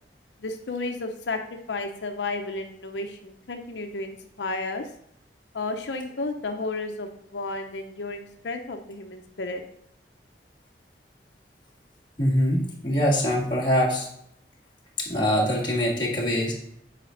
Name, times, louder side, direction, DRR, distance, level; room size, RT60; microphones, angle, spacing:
voice 1, 0.4-1.4 1.7-4.8 5.5-9.6, left 3 dB, 90° left, 5 dB, 0.7 m, -32 dB
voice 2, 12.2-14.1 15.0-16.5, equal, 25° left, -4 dB, 2.0 m, -23 dB
8.4 x 5.1 x 3.9 m, 0.72 s
head